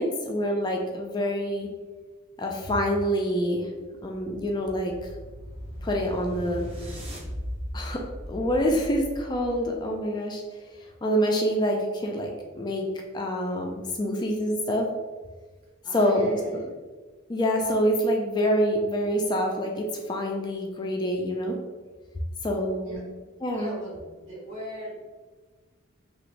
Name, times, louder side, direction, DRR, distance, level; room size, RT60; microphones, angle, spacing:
voice 1, 0.0-1.7 2.4-3.7 4.0-5.1 5.8-6.7 7.7-8.0 8.3-10.4 10.7-12.9 13.1-14.9 15.9-16.7 17.3-21.5 22.4-23.0 23.4-23.7, equal, 20° left, 1 dB, 0.3 m, -26 dB
sound 1, 3.7-9.9, equal, 25° right, 0.6 m, -38 dB
voice 2, 15.8-16.7 22.8-23.0 23.5-25.1, equal, 65° right, -6 dB, 1.4 m, -39 dB
2.8 x 2.5 x 3.1 m, 1.3 s
head